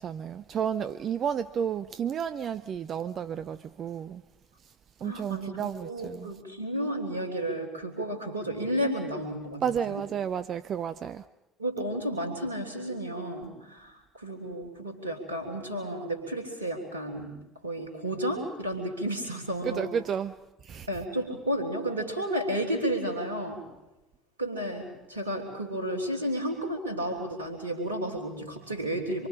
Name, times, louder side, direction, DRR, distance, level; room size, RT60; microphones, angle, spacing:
voice 1, 0.0-4.2 5.0-6.3 9.6-11.2 19.6-20.3 20.6-20.9, right 8 dB, 45° right, 0.7 m, -32 dB
voice 2, 5.0-10.0 11.6-17.3 17.6-19.9 20.9-23.6 24.4-29.3, right 1 dB, 85° right, 3.5 m, -32 dB
26.5 x 23.5 x 5.0 m
figure-of-eight pair, 60°, 0 cm